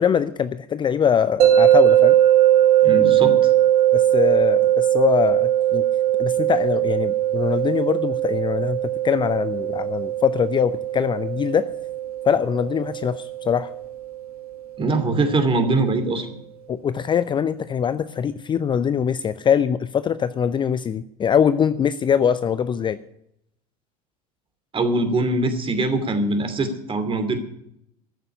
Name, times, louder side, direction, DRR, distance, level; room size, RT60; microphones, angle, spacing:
voice 1, 0.0-2.2 3.9-5.8 6.2-8.8 9.0-11.7 12.3-13.7 16.7-23.0, left 8 dB, 25° left, 14 dB, 0.6 m, -22 dB
sound 1, 1.4-14.5, right 12 dB, 75° right, 1.9 m, -20 dB
voice 2, 2.8-3.5 14.8-16.3 24.7-27.4, right 2 dB, 25° right, 8 dB, 2.7 m, -22 dB
14.0 x 6.8 x 9.9 m, 0.74 s
figure-of-eight pair, 75°, 19 cm